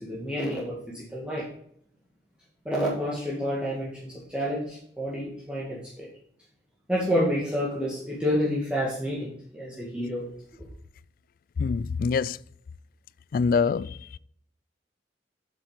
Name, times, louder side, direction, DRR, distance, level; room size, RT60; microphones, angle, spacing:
voice 1, 0.0-1.5 2.7-6.1 6.9-10.3, equal, 5° right, 1.9 m, -29 dB
voice 2, 11.6-12.4 13.3-14.2, left 5 dB, 50° left, 0.3 m, -25 dB
7.5 x 7.4 x 5.0 m
head